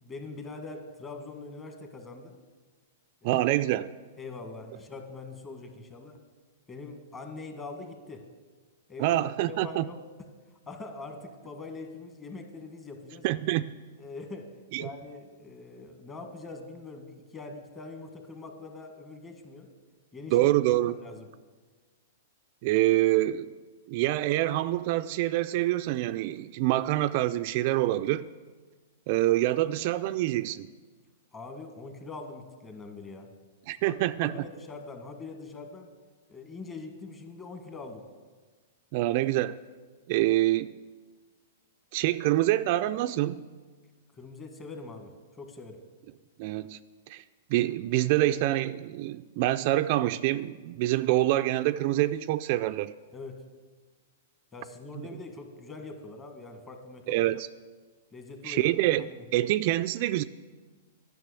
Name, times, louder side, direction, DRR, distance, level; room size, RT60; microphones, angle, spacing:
voice 1, 0.0-2.4 3.2-3.4 4.2-6.2 6.7-8.3 8.9-9.2 9.5-10.0 10.7-13.3 14.0-19.7 20.1-20.5 20.9-21.3 31.3-33.3 33.9-35.9 36.3-38.0 44.1-45.1 45.4-45.8 53.1-53.4 54.5-57.1 58.1-58.7 59.0-59.3, left 3 dB, 20° left, 1.6 m, -43 dB
voice 2, 3.2-3.9 9.0-9.9 13.2-13.7 14.7-14.9 20.3-20.9 22.6-23.5 23.9-28.3 29.1-30.7 33.7-34.3 38.9-39.6 40.1-40.8 41.9-43.4 46.4-46.8 47.1-47.2 47.5-52.9 57.1-57.5 58.4-60.2, right 15 dB, 50° right, 0.3 m, -26 dB
10.5 x 6.1 x 8.3 m
hypercardioid pair, 125°, 0 cm